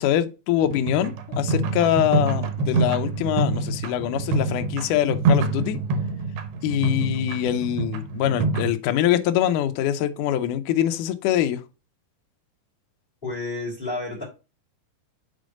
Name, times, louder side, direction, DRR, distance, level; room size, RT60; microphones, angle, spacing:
voice 1, 0.0-5.8 6.6-11.6, left 11 dB, 75° left, 1.9 m, -24 dB
sound 1, 0.6-8.7, right 3 dB, 85° right, 3.0 m, -26 dB
voice 2, 13.2-14.2, left 2 dB, 15° left, 3.0 m, -30 dB
6.4 x 4.3 x 6.3 m
omnidirectional pair, 4.4 m